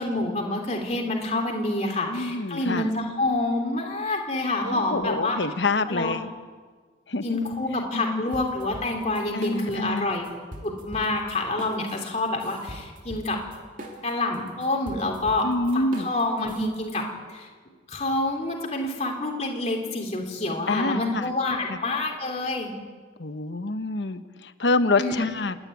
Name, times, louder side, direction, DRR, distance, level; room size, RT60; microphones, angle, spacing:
voice 1, 0.0-5.4 5.9-6.1 7.2-10.3 10.6-13.4 14.0-15.5 15.7-17.5 17.9-22.7 25.0-25.2, left 2 dB, 35° left, 1 dB, 3.3 m, -27 dB
voice 2, 2.1-2.9 4.6-6.3 7.1-7.4 7.7-8.3 9.3-10.1 15.4-16.1 20.7-21.3 21.7-21.8 23.2-25.6, left 2 dB, 75° left, 11 dB, 1.0 m, -27 dB
sound 1, 8.3-10.0 10.2-17.0, equal, 45° right, 2.9 m, -42 dB
28.0 x 11.0 x 9.7 m, 1.5 s
head